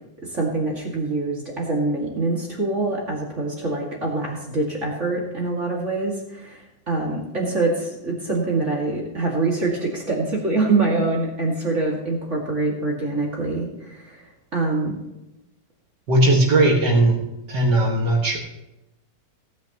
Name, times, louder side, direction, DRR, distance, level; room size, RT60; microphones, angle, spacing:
voice 1, 0.2-15.0, right 3 dB, 35° right, -3 dB, 2.6 m, -25 dB
voice 2, 16.1-17.2 17.5-18.4, right 2 dB, 60° right, -1 dB, 2.4 m, -18 dB
18.5 x 10.0 x 3.0 m, 0.95 s
omnidirectional pair, 2.1 m